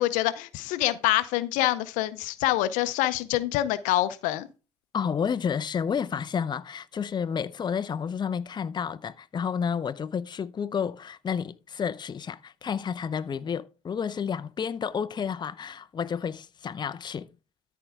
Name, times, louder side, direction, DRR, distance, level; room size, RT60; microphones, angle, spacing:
voice 1, 0.0-4.5, left 15 dB, 75° left, 0.6 m, -26 dB
voice 2, 4.9-17.3, left 7 dB, 35° left, 0.6 m, -30 dB
13.5 x 4.5 x 3.6 m
hypercardioid pair, 65°, 13 cm